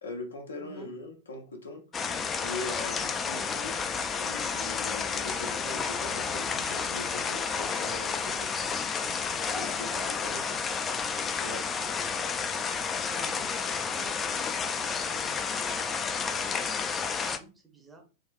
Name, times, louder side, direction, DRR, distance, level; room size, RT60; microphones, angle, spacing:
voice 1, 0.0-1.8 2.4-3.9 4.2-8.5 9.5-10.4 11.4-11.6, left 3 dB, 70° left, 3 dB, 0.7 m, -41 dB
voice 2, 0.6-0.9 9.9-10.1 12.7-18.0, right 2 dB, 15° right, 4 dB, 0.7 m, -50 dB
sound 1, 1.9-17.4, left 5 dB, 20° left, 0.3 m, -31 dB
3.7 x 2.6 x 2.3 m, 0.33 s
figure-of-eight pair, 90°, 0 cm